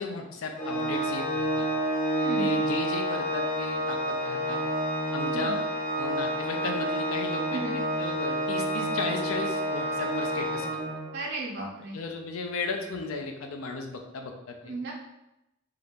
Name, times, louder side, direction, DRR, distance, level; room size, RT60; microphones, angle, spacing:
voice 1, 0.0-1.7 2.4-4.6 5.1-5.6 6.0-7.6 8.0-10.7 11.9-14.8, left 3 dB, 90° left, 3 dB, 0.5 m, -35 dB
Organ, 0.6-11.3, right 1 dB, 40° left, 1.0 m, -29 dB
voice 2, 2.1-2.5 5.3-5.6 7.5-7.7 11.1-12.0 14.7-14.9, right 2 dB, 55° right, -3 dB, 0.4 m, -34 dB
2.7 x 2.4 x 3.4 m, 0.89 s
head